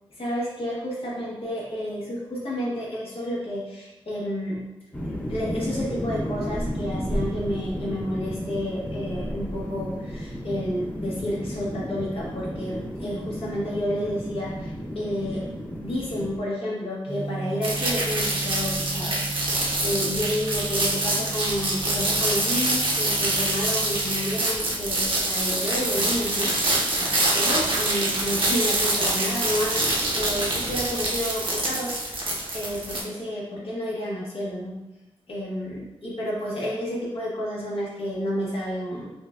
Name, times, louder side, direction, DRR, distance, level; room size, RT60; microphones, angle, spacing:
voice 1, 0.1-4.6 5.3-15.4 15.8-32.2 32.5-34.8 35.3-39.1, equal, 70° left, -5 dB, 1.0 m, -30 dB
sound 1, 4.9-16.4, equal, 15° left, 0.5 m, -33 dB
Gong, 17.1-24.4, right 2 dB, 85° right, 1.0 m, -36 dB
sound 2, 17.6-33.0, right 2 dB, 60° right, 0.8 m, -25 dB
5.5 x 2.2 x 2.4 m, 1.0 s
wide cardioid pair, 115°, 10 cm